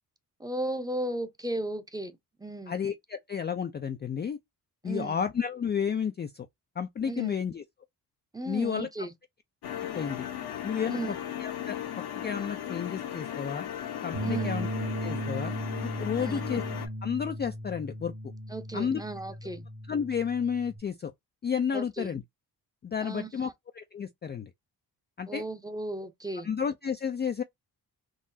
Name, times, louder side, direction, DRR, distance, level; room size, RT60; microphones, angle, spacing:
voice 1, 0.4-2.7 4.8-5.2 7.0-7.3 8.3-9.1 10.9-11.1 14.2-14.5 16.2-16.4 18.5-19.7 21.7-22.1 23.0-23.5 25.3-26.5, right 2 dB, 10° right, 0.7 m, -35 dB
voice 2, 2.7-4.4 4.8-6.5 6.8-7.6 8.5-8.9 9.9-10.3 10.6-11.0 11.4-11.8 12.2-13.7 14.0-14.7 15.0-15.5 16.0-16.6 17.0-18.1 18.7-19.0 19.9-21.1 21.4-22.2 22.8-24.5 25.2-25.4 26.4-27.4, left 7 dB, 25° left, 0.4 m, -31 dB
sound 1, 9.6-16.9, left 10 dB, 70° left, 1.0 m, -37 dB
sound 2, 14.1-20.8, equal, 50° right, 1.4 m, -36 dB
3.8 x 2.0 x 2.6 m
cardioid pair, 75°, 39 cm